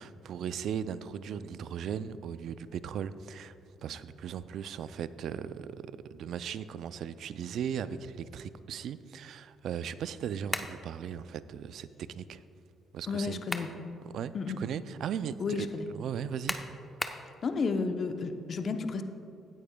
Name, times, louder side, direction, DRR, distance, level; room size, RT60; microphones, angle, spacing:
voice 1, 0.0-3.5 3.8-12.4 12.9-13.4 14.1-16.6, right 8 dB, 70° right, 14 dB, 0.3 m, -37 dB
sound 1, 10.5-10.8 13.2-13.8 14.3-14.4 16.5-17.3, left 2 dB, 20° left, 0.7 m, -35 dB
voice 2, 13.1-13.7 14.3-14.6 15.4-15.9 17.4-19.0, left 4 dB, 55° left, 7 dB, 0.7 m, -32 dB
15.5 x 9.3 x 2.3 m, 2.7 s
supercardioid pair, 60°, 0 cm